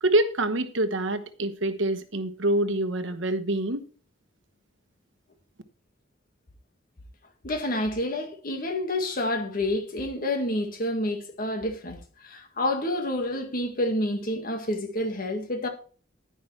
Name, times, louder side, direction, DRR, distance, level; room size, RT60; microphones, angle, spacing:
voice 1, 0.0-3.9, right 1 dB, 75° right, 1.1 m, -26 dB
voice 2, 7.4-15.7, left 1 dB, 45° left, 1.9 m, -29 dB
10.5 x 10.0 x 3.3 m
head